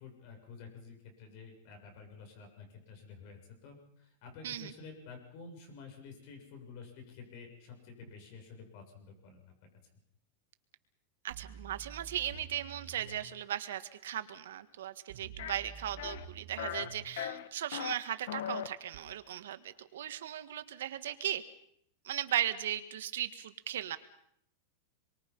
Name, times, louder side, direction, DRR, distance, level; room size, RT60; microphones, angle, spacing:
voice 1, 0.0-9.4, left 5 dB, 45° left, 4 dB, 7.3 m, -50 dB
voice 2, 11.2-21.4 22.0-24.0, right 11 dB, 85° right, 10 dB, 1.8 m, -37 dB
sound 1, 11.3-13.3 15.1-17.1 18.9-19.0, right 6 dB, 50° right, 2.4 m, -49 dB
sound 2, 15.4-15.5 16.0-16.3 16.6-16.9 17.2-17.9 18.3-18.7, left 10 dB, 70° left, 1.5 m, -38 dB
28.0 x 23.5 x 5.6 m, 0.72 s
supercardioid pair, 165°, 0 cm